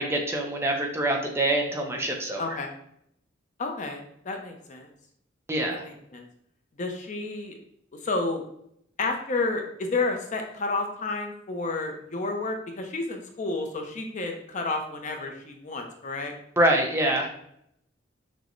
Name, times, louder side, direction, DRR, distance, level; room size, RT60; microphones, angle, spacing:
voice 1, 0.0-2.4 5.5-5.8 16.6-17.4, right 1 dB, 15° right, 1 dB, 0.5 m, -25 dB
voice 2, 2.4-2.7 3.6-4.9 5.7-6.2 6.8-7.6 7.9-8.4 9.0-16.3, left 3 dB, 40° left, 3 dB, 0.5 m, -31 dB
6.0 x 2.1 x 3.0 m, 0.73 s
head